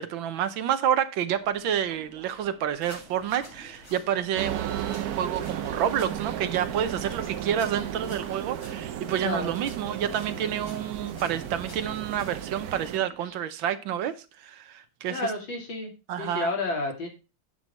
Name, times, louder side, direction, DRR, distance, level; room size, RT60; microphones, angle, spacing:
voice 1, 0.0-15.2 16.1-16.5, right 9 dB, 80° right, 1.6 m, -29 dB
sound 1, 1.3-13.4, right 4 dB, 40° right, 1.4 m, -52 dB
sound 2, 2.8-12.4, left 1 dB, 25° left, 3.5 m, -50 dB
sound 3, 4.4-13.0, right 10 dB, 65° right, 1.0 m, -34 dB
voice 2, 9.2-9.5 15.1-15.9 16.2-17.1, left 2 dB, 80° left, 3.3 m, -30 dB
9.5 x 6.2 x 4.1 m
omnidirectional pair, 2.1 m